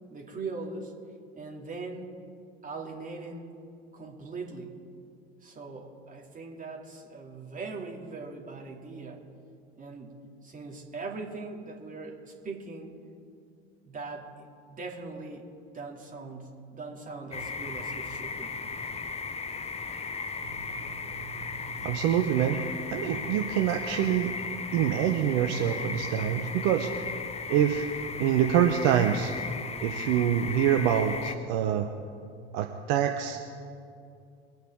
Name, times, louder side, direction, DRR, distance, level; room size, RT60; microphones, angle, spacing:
voice 1, 0.1-0.9 1.3-2.1 2.6-3.5 3.9-4.8 5.4-9.2 9.7-12.9 13.8-15.4 15.7-18.5, right 3 dB, 25° right, 0 dB, 2.7 m, -40 dB
sound 1, 17.3-31.3, left 4 dB, 20° left, 0.9 m, -36 dB
voice 2, 21.8-22.6 22.9-24.3 24.7-26.9 27.5-27.9 28.2-29.3 29.8-31.9 32.5-33.4, right 10 dB, 55° right, 5 dB, 1.0 m, -25 dB
24.0 x 9.2 x 3.7 m, 2.4 s
figure-of-eight pair, 70°, 32 cm